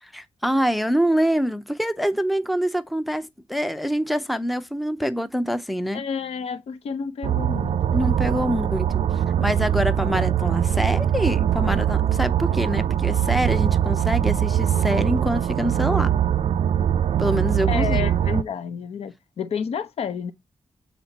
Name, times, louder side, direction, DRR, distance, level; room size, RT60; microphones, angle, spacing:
voice 1, 0.0-6.0 7.9-8.9 9.1-16.1 17.2-18.0, equal, ahead, 0.5 m, -25 dB
voice 2, 5.9-8.7 17.7-20.3, left 7 dB, 80° left, 0.8 m, -31 dB
sound 1, 7.2-18.4, right 10 dB, 75° right, 0.4 m, -22 dB
7.4 x 4.2 x 4.0 m
wide cardioid pair, 180°, 10 cm